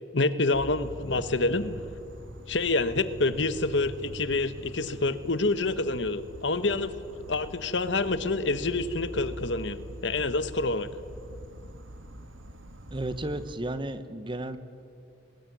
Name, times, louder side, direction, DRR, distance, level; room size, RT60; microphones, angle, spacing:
voice 1, 0.1-1.8 2.5-6.9 7.3-10.9, left 3 dB, 65° left, 13 dB, 1.2 m, -27 dB
Insect, 0.5-13.5, right 1 dB, 85° right, 2.3 m, -44 dB
voice 2, 12.9-14.6, right 1 dB, 25° right, 12 dB, 1.2 m, -33 dB
23.0 x 19.5 x 9.4 m, 2.4 s
head